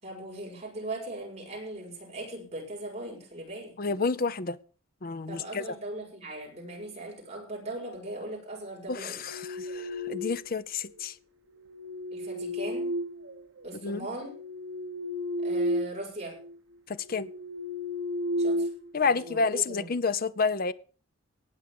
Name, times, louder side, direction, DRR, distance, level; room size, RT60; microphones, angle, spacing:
voice 1, 0.0-3.7 5.3-9.2 12.1-12.9 13.6-14.3 15.4-16.4 18.4-18.7 19.0-19.9, right 1 dB, 30° right, 7.0 m, -39 dB
voice 2, 3.8-4.6 5.0-5.6 8.9-11.1 13.8-14.1 16.9-17.3 18.9-20.7, left 4 dB, 45° left, 0.7 m, -29 dB
sound 1, 9.1-10.6 11.6-13.7 14.2-16.0 16.3-16.5 17.0-19.4, equal, 65° right, 1.4 m, -33 dB
18.5 x 6.3 x 6.9 m
head